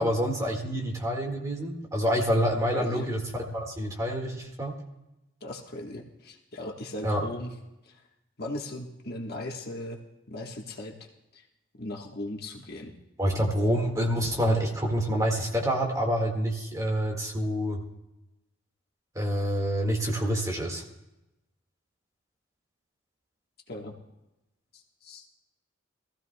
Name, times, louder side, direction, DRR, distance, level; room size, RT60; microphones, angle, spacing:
voice 1, 0.0-4.7 7.0-7.2 13.2-17.8 19.2-20.8, equal, 15° right, 1 dB, 1.9 m, -27 dB
voice 2, 2.7-3.1 5.4-7.5 7.8-7.9 8.4-10.0 10.3-10.9 11.3-11.4 11.8-12.9 23.7-23.9 24.7-25.2, left 1 dB, 55° left, 1 dB, 1.4 m, -38 dB
22.5 x 15.0 x 2.3 m, 0.96 s
head